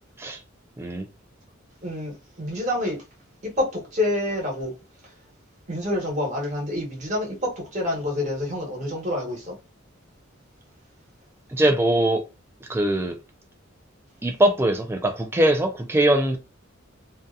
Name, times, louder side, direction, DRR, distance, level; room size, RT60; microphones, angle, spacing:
voice 1, 1.8-3.0 3.4-4.7 5.7-9.5, left 1 dB, 35° right, 1.2 m, -27 dB
voice 2, 11.5-12.2 12.7-13.2 14.2-16.4, right 1 dB, 10° right, 0.3 m, -21 dB
2.6 x 2.3 x 2.4 m
head